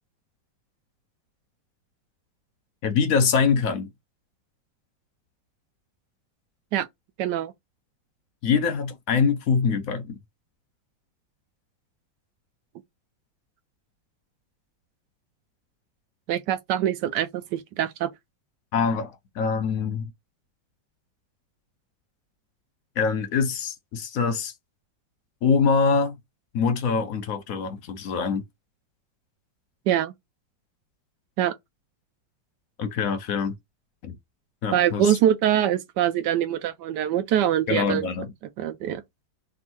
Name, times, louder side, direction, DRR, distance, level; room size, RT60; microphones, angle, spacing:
voice 1, 2.8-3.9 8.4-10.2 18.7-20.1 23.0-24.5 25.4-26.1 26.5-28.4 32.8-33.5 34.0-34.1 34.6-35.2 37.7-38.3, left 5 dB, 60° left, 0.9 m, -24 dB
voice 2, 7.2-7.5 16.3-18.1 29.9-30.1 31.4-31.5 34.7-38.1 38.6-39.0, right 11 dB, 75° right, 1.1 m, -24 dB
3.5 x 2.5 x 4.4 m
omnidirectional pair, 2.1 m